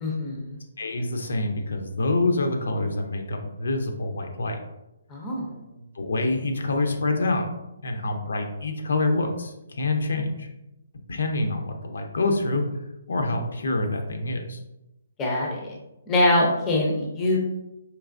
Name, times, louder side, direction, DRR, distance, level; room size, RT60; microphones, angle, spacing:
voice 1, 0.0-0.6 5.1-5.5 15.2-15.7 16.1-17.4, left 1 dB, 10° left, -2 dB, 0.5 m, -23 dB
voice 2, 0.8-4.6 5.9-7.5 7.8-10.5 11.1-12.6 13.1-14.6, left 2 dB, 75° left, 4 dB, 0.6 m, -26 dB
4.6 x 2.9 x 2.5 m, 0.91 s
hypercardioid pair, 170°, 0 cm